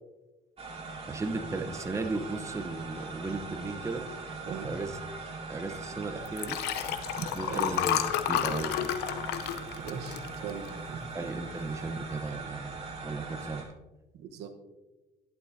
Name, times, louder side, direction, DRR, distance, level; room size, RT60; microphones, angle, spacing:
sound 1, 0.6-13.6, right 4 dB, 35° right, 2.5 m, -41 dB
voice 1, 1.1-4.0 4.5-5.0 5.5-6.6 7.3-8.0 8.3-8.9 11.1-13.7, right 3 dB, 15° right, 6 dB, 0.8 m, -36 dB
Liquid, 6.3-10.9 11.4-11.7 11.9-12.0, left 10 dB, 85° left, 0.7 m, -31 dB
sound 2, 7.2-13.1, right 10 dB, 50° left, 2.7 m, -57 dB
voice 2, 9.8-10.2 10.4-11.0 14.1-14.5, right 7 dB, 80° right, 7 dB, 1.1 m, -39 dB
11.5 x 11.0 x 2.7 m, 1.1 s
cardioid pair, 110°, 17 cm